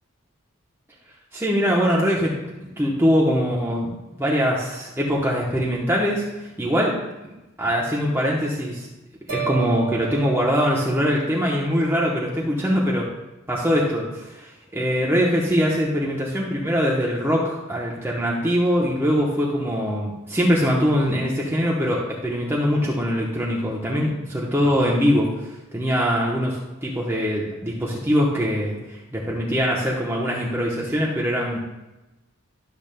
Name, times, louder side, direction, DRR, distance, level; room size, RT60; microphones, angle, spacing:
voice 1, 1.3-2.4 2.8-3.9 4.2-6.2 6.6-7.0 7.6-8.9 9.3-13.1 13.5-31.6, equal, 10° right, -4 dB, 0.9 m, -22 dB
sound 1, 9.3-11.6, right 11 dB, 70° right, 1.5 m, -33 dB
12.0 x 6.9 x 2.2 m, 1.0 s
head